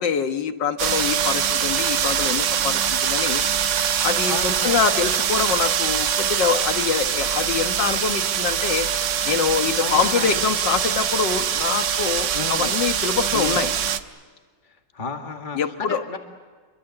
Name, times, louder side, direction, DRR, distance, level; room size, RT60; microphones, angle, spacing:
voice 1, 0.0-3.4 4.0-8.9 9.3-13.7 15.6-16.0, left 6 dB, 85° left, 8 dB, 2.0 m, -24 dB
sound 1, 0.8-14.0, right 8 dB, 80° right, 1.6 m, -23 dB
voice 2, 4.2-4.8 9.8-10.4 12.3-12.8 13.3-13.6 14.9-16.2, left 4 dB, 25° left, 3 dB, 2.2 m, -32 dB
29.0 x 24.0 x 7.9 m, 1.5 s
omnidirectional pair, 1.9 m